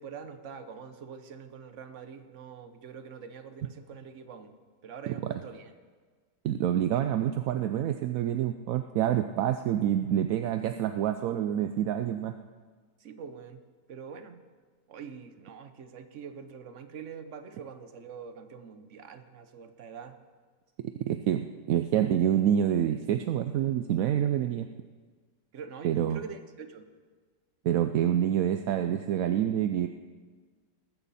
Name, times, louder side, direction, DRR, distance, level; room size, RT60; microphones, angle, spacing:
voice 1, 0.0-4.5 4.8-5.7 13.0-13.6 13.9-14.4 14.9-20.2 25.5-26.9, right 6 dB, 50° right, 9 dB, 1.2 m, -44 dB
voice 2, 6.4-12.3 21.0-24.7 25.8-26.2 27.6-29.9, right 10 dB, 70° right, 8 dB, 0.9 m, -27 dB
19.0 x 14.0 x 4.2 m, 1.5 s
omnidirectional pair, 1.8 m